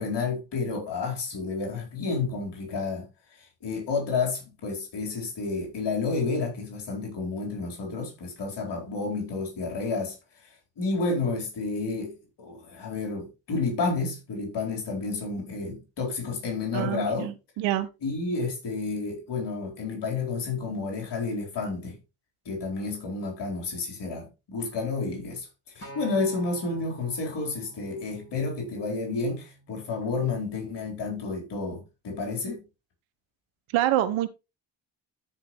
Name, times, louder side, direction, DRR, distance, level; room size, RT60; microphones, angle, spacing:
voice 1, 0.0-3.1 3.6-10.1 10.8-17.3 18.0-22.0 22.5-25.5 25.8-32.6, left 4 dB, 55° left, 4.4 m, -30 dB
voice 2, 16.7-17.9 33.7-34.3, right 13 dB, 70° right, 1.1 m, -26 dB
Acoustic guitar, 25.8-30.1 30.9-31.0, right 2 dB, 30° left, 6.7 m, -48 dB
13.5 x 5.5 x 3.2 m
hypercardioid pair, 45°, 49 cm